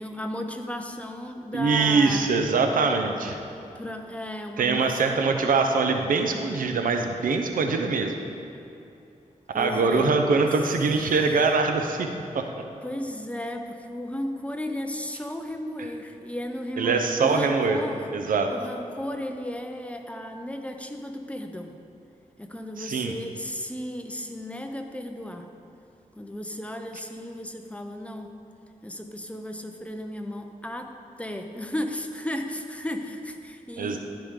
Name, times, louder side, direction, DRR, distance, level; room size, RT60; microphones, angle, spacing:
voice 1, 0.0-2.3 3.6-5.2 9.5-10.5 12.8-18.1 18.5-21.8 22.4-25.5 26.2-28.3 28.8-30.9 31.2-34.0, left 1 dB, 10° left, 4 dB, 0.7 m, -34 dB
voice 2, 1.5-3.4 4.6-8.2 9.5-12.1 12.3-12.4 16.8-17.8 18.1-18.5 22.8-23.1 33.8-34.0, right 4 dB, 90° right, 5 dB, 0.6 m, -23 dB
13.0 x 5.1 x 3.8 m, 2.7 s
cardioid pair, 65°, 14 cm